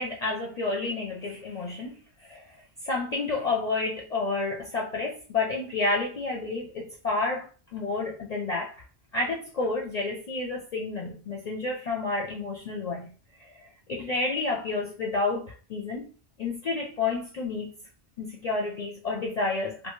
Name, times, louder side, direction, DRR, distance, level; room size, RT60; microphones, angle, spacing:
voice 1, 0.0-2.0 2.3-2.4 2.8-8.7 9.1-13.1 13.4-13.5 13.9-16.1 16.4-17.7 18.2-19.9, left 3 dB, 50° left, 0.5 m, -30 dB
2.5 x 2.3 x 3.0 m
omnidirectional pair, 1.1 m